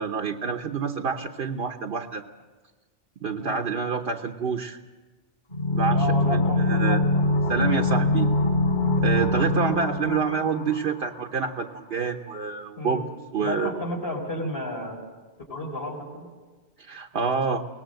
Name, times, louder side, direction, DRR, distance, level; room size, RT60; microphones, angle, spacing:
voice 1, 0.0-2.2 3.2-4.8 5.7-7.0 7.5-8.3 9.0-13.0 13.3-13.7 16.8-17.6, right 5 dB, 65° right, 2 dB, 1.2 m, -27 dB
sound 1, 5.5-11.2 11.5-11.6, left 2 dB, 50° left, 6.0 m, -23 dB
voice 2, 5.9-7.0 12.8-13.1 13.4-15.0 15.5-16.3, left 1 dB, 65° left, -3 dB, 5.0 m, -32 dB
23.0 x 19.0 x 7.7 m, 1.3 s
omnidirectional pair, 1.1 m